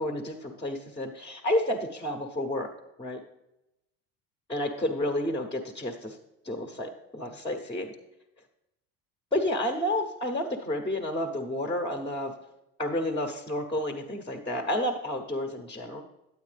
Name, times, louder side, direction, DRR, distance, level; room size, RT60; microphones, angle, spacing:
voice 1, 0.0-2.7 3.0-3.2 4.5-6.2 6.4-7.9 9.3-12.3 12.8-16.0, left 1 dB, 15° left, 4 dB, 0.9 m, -30 dB
9.5 x 8.3 x 3.4 m, 0.88 s
supercardioid pair, 90°, 38 cm